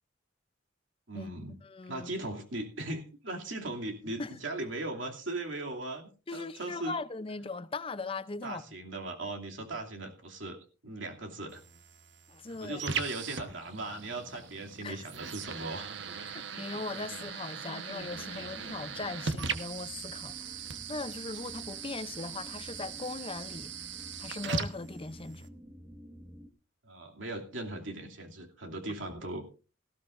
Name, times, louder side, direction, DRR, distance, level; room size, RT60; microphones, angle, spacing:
voice 1, 1.1-1.6 1.9-6.9 8.4-11.6 12.5-15.9 26.8-29.4, right 2 dB, 85° right, 2.7 m, -38 dB
voice 2, 1.6-2.1 4.2-4.3 6.3-8.6 12.3-12.8 14.8-15.0 16.3-23.7 24.2-25.5, left 3 dB, 30° left, 0.6 m, -39 dB
sound 1, 11.5-25.5, right 5 dB, 65° right, 1.2 m, -39 dB
sound 2, 18.0-26.5, equal, 10° right, 1.4 m, -51 dB
18.5 x 15.0 x 2.6 m
head